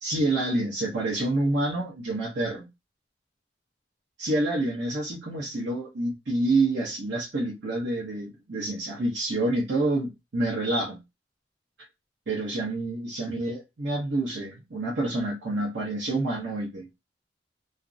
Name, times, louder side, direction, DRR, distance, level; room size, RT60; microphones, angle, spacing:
voice 1, 0.0-2.7 4.2-11.0 12.3-16.9, right 2 dB, 75° right, 0.8 m, -28 dB
2.5 x 2.1 x 2.4 m
head